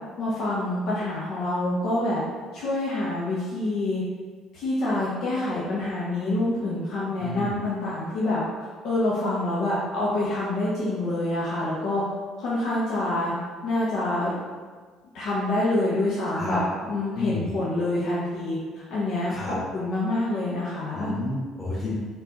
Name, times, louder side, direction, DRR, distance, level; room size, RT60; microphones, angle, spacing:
voice 1, 0.2-2.2 2.5-4.0 4.5-8.4 8.8-12.0 12.4-13.3 13.6-14.3 15.1-21.1, left 2 dB, 60° left, -7 dB, 0.9 m, -26 dB
voice 2, 7.2-7.6 16.3-16.6 17.1-17.6 19.3-19.6 20.9-21.9, left 2 dB, 20° left, -7 dB, 1.4 m, -30 dB
3.9 x 3.8 x 2.9 m, 1.5 s
hypercardioid pair, 55°, 0 cm